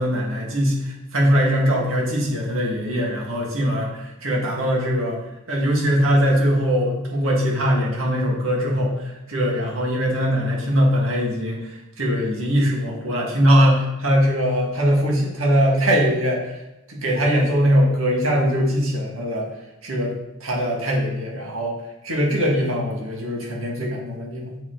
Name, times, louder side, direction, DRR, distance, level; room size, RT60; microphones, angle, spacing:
voice 1, 0.0-5.2 5.5-16.6 16.9-19.5 19.8-20.1 20.4-21.8 22.0-24.6, equal, 80° right, -2 dB, 1.8 m, -21 dB
7.3 x 4.8 x 3.8 m, 0.92 s
head